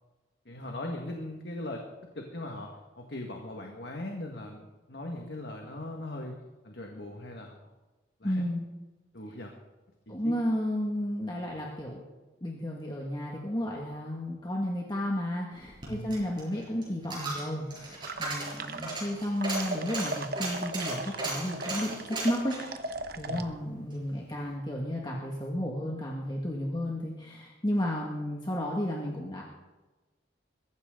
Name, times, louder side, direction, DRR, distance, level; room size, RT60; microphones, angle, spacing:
voice 1, 0.5-6.4 6.6-7.6 8.2-8.5 9.1-9.5 10.1-10.3 15.9-16.2 23.2-23.5, left 1 dB, 60° left, 1 dB, 1.8 m, -39 dB
voice 2, 8.2-8.7 10.1-12.0 12.4-22.6 23.2-29.4, equal, 25° left, -2 dB, 2.0 m, -32 dB
Coin (dropping), 15.6-24.0 24.4-24.5, right 2 dB, 25° right, 6.0 m, -37 dB
sound 1, 18.0-19.1 19.4-23.4, right 2 dB, 50° right, 1.0 m, -37 dB
22.5 x 15.0 x 3.9 m, 1.2 s
head